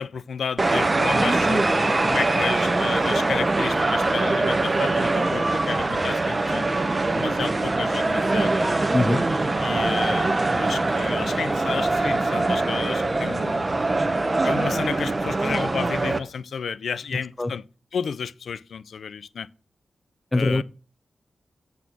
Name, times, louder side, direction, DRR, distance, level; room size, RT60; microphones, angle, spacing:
voice 1, 0.0-6.7 7.1-8.5 9.6-13.6 14.4-17.6 17.9-19.5 20.3-20.6, left 6 dB, 85° left, 0.4 m, -32 dB
sound 1, 0.6-16.2, right 2 dB, 30° right, 0.8 m, -23 dB
voice 2, 17.1-17.5 20.3-20.6, left 2 dB, 20° left, 0.5 m, -23 dB
8.2 x 4.2 x 6.0 m
wide cardioid pair, 85°, 0 cm